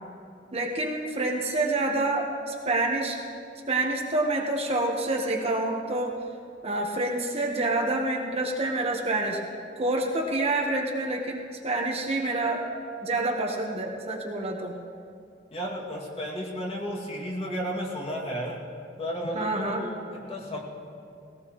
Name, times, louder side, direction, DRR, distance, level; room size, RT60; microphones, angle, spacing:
voice 1, 0.5-3.2 3.7-6.1 6.6-9.4 9.8-12.7 13.0-14.7 19.3-19.9, right 2 dB, 35° right, 0 dB, 1.2 m, -27 dB
voice 2, 15.5-18.6 19.0-20.6, equal, 35° left, -3 dB, 2.4 m, -33 dB
19.5 x 17.5 x 3.1 m, 2.5 s
head